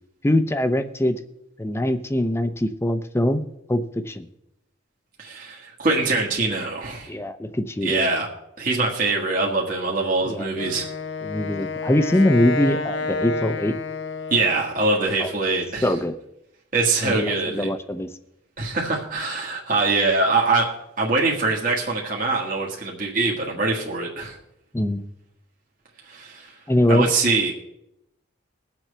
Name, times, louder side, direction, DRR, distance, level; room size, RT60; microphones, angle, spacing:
voice 1, 0.2-1.2 1.6-4.3 7.1-8.1 10.2-10.5 11.2-13.8 15.2-15.3 15.8-16.1 17.0-18.1 24.7-25.0 26.7-27.1, left 1 dB, 15° left, 9 dB, 0.6 m, -22 dB
voice 2, 5.2-7.1 7.8-8.3 8.6-10.9 14.3-15.9 16.7-17.7 18.6-24.4 26.1-26.5 26.9-27.5, right 3 dB, 45° right, -2 dB, 1.7 m, -23 dB
Wind instrument woodwind instrument, 10.5-14.8, left 3 dB, 65° left, 0.7 m, -29 dB
22.0 x 7.4 x 3.3 m, 0.85 s
head